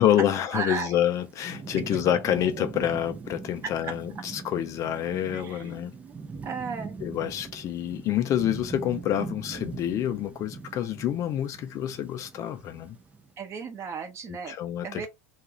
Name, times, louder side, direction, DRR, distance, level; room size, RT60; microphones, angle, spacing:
voice 1, 0.0-5.9 7.0-13.0 14.5-15.1, left 11 dB, 40° left, 0.4 m, -27 dB
voice 2, 0.5-0.9 2.6-2.7 3.6-3.9 5.3-6.1 6.4-7.0 13.4-14.6 14.8-15.1, right 5 dB, 35° right, 0.9 m, -35 dB
Thunderstorm / Rain, 1.0-13.3, right 4 dB, 15° right, 0.4 m, -41 dB
2.4 x 2.3 x 2.9 m
hypercardioid pair, 100°, 8 cm